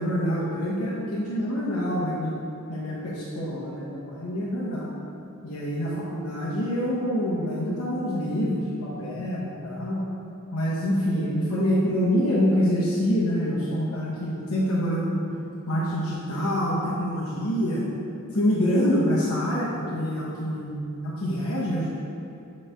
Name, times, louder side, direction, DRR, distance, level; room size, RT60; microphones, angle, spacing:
voice 1, 0.0-2.3 2.7-4.9 5.4-10.0 10.5-15.2 15.7-17.8 18.3-21.9, equal, 80° left, -7 dB, 0.9 m, -26 dB
6.6 x 3.2 x 5.0 m, 2.6 s
head